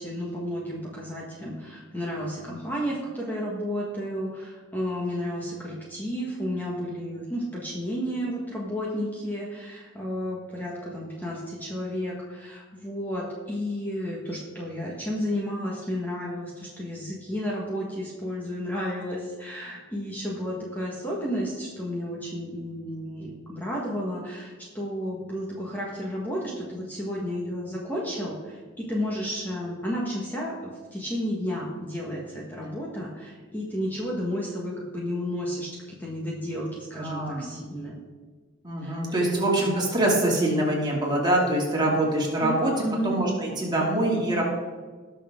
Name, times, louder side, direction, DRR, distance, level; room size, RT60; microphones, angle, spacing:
voice 1, 0.0-38.0 38.8-39.7 42.4-43.1, equal, 10° left, -4 dB, 1.6 m, -32 dB
voice 2, 37.0-37.5 38.6-42.7 43.0-44.4, right 1 dB, 20° right, -3 dB, 2.7 m, -24 dB
18.5 x 6.4 x 3.8 m, 1.4 s
head